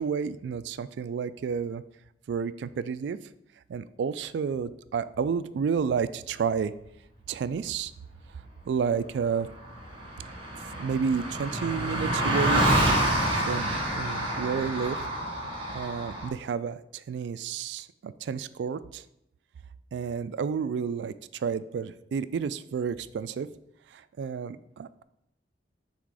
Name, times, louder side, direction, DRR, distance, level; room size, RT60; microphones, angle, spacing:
voice 1, 0.0-1.8 2.3-3.2 3.7-6.7 7.3-7.9 8.3-9.5 10.7-12.6 13.4-15.0 15.7-19.0 19.9-23.5 23.9-25.0, right 6 dB, 75° right, 15 dB, 0.3 m, -31 dB
Car passing by, 9.2-9.3 9.4-16.3, right 1 dB, 30° right, 1.3 m, -28 dB
6.0 x 3.6 x 4.8 m, 0.82 s
head